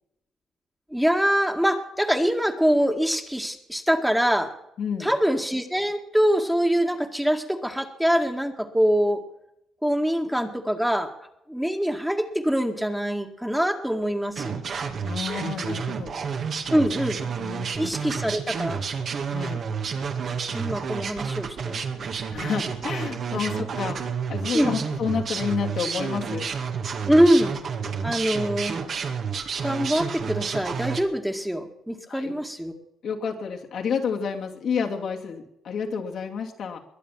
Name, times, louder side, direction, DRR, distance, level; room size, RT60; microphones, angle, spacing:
voice 1, 0.9-4.5 5.0-9.2 9.8-11.1 11.5-14.6 16.7-17.3 17.8-18.8 20.5-21.8 23.3-23.4 24.5-24.8 27.1-27.6 28.0-28.8 29.6-32.7, equal, 5° right, 4 dB, 2.0 m, -24 dB
voice 2, 4.8-5.1 15.0-16.1 16.5-16.6 17.4-17.7 19.3-19.6 22.3-24.0 24.3-26.5 32.0-32.4 33.0-36.8, left 6 dB, 65° left, 1 dB, 2.7 m, -30 dB
sound 1, 14.3-31.0, right 6 dB, 55° right, 2.2 m, -30 dB
22.5 x 8.0 x 7.5 m, 0.81 s
cardioid pair, 90°, 0 cm